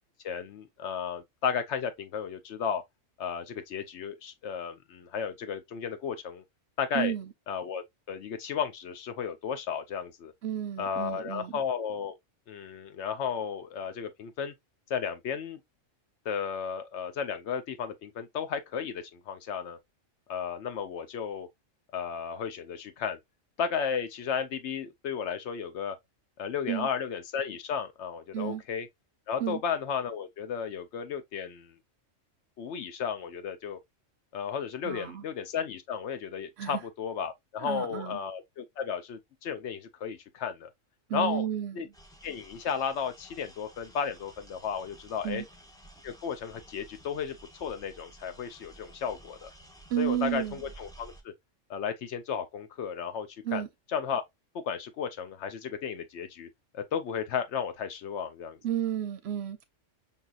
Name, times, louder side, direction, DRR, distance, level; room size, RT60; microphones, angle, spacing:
voice 1, 0.2-2.8 3.2-6.4 6.8-7.1 7.5-10.3 10.8-12.1 12.5-14.5 14.9-15.6 16.3-19.8 20.3-21.5 21.9-23.2 23.6-26.0 26.4-28.9 29.3-31.7 32.6-33.8 34.3-40.7 41.1-41.5 41.8-41.9 42.2-45.4 46.0-49.5 50.0-51.3 51.7-53.6 53.9-54.2 54.6-56.5 56.7-58.6, left 7 dB, 65° left, 0.8 m, -34 dB
voice 2, 6.9-7.3 10.4-11.6 26.7-26.9 28.3-28.6 29.4-29.6 34.8-35.2 36.6-36.8 37.6-38.2 41.1-41.9 45.2-45.5 49.9-50.6 53.4-53.7 58.6-59.6, right 11 dB, 65° right, 0.8 m, -32 dB
sound 1, 41.9-51.2, right 1 dB, 5° left, 0.3 m, -53 dB
5.5 x 2.7 x 2.3 m
omnidirectional pair, 1.3 m